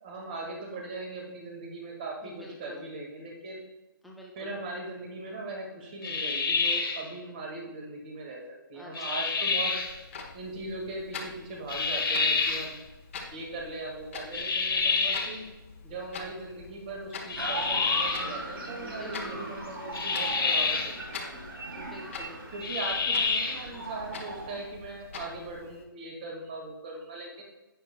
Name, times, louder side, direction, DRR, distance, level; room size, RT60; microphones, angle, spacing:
voice 1, 0.0-3.7 4.4-8.4 8.7-9.7 10.3-12.8 13.3-15.4 15.8-21.4 22.5-27.4, right 2 dB, 25° right, 0 dB, 1.7 m, -39 dB
voice 2, 2.2-2.8 4.0-4.5 8.7-9.2 16.0-16.3 18.9-19.5 21.8-22.4, left 1 dB, ahead, -3 dB, 0.5 m, -47 dB
sound 1, 6.0-7.1 8.9-9.9 11.7-12.7 14.3-15.4 17.3-18.3 19.9-21.0 22.6-23.7, left 4 dB, 85° left, 1.3 m, -28 dB
Clock, 9.8-25.8, left 4 dB, 35° left, 1.1 m, -45 dB
sound 2, 17.4-24.6, right 1 dB, 85° right, 2.8 m, -39 dB
11.0 x 8.8 x 2.2 m, 1.0 s
hypercardioid pair, 170°, 12 cm